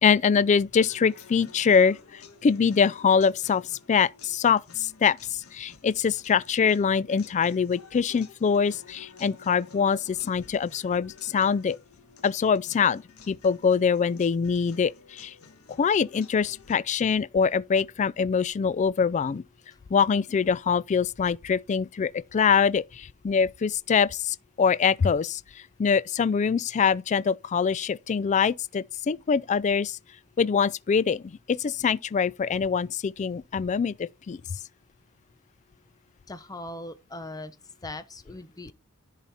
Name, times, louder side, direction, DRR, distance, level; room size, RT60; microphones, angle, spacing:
voice 1, 0.0-11.8 12.2-15.3 15.8-19.4 19.9-30.0 30.4-31.2 31.5-34.6, left 6 dB, 35° left, 0.3 m, -24 dB
sound 1, 0.7-16.7, left 5 dB, 80° left, 1.5 m, -52 dB
voice 2, 36.3-37.6 37.8-38.7, left 2 dB, 15° left, 0.8 m, -39 dB
10.5 x 4.1 x 4.2 m
head